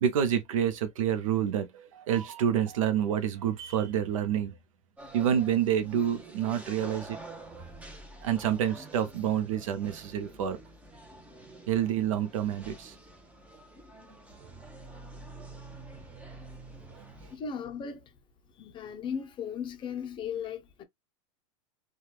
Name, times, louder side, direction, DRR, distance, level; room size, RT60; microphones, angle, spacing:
voice 1, 0.0-4.6 5.1-7.2 8.2-10.6 11.7-12.9 14.6-14.7 15.4-15.5, right 9 dB, 80° right, 0.6 m, -28 dB
sound 1, 5.0-17.4, right 2 dB, 10° right, 0.7 m, -48 dB
voice 2, 17.3-18.1 18.5-20.8, left 7 dB, 30° left, 0.6 m, -37 dB
3.2 x 2.3 x 2.3 m
supercardioid pair, 120°, 17 cm